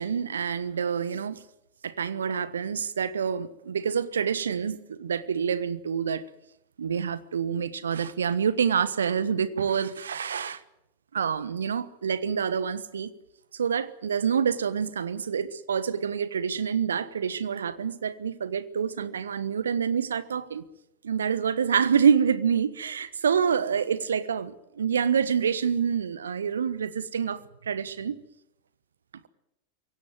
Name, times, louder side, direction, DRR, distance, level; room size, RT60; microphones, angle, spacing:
voice 1, 0.0-1.4 1.8-6.2 6.8-10.6 11.1-13.1 13.5-20.6 21.0-24.5 24.8-28.2, right 7 dB, 70° right, 1.2 m, -27 dB
23.5 x 17.0 x 9.4 m
figure-of-eight pair, 90°, 0 cm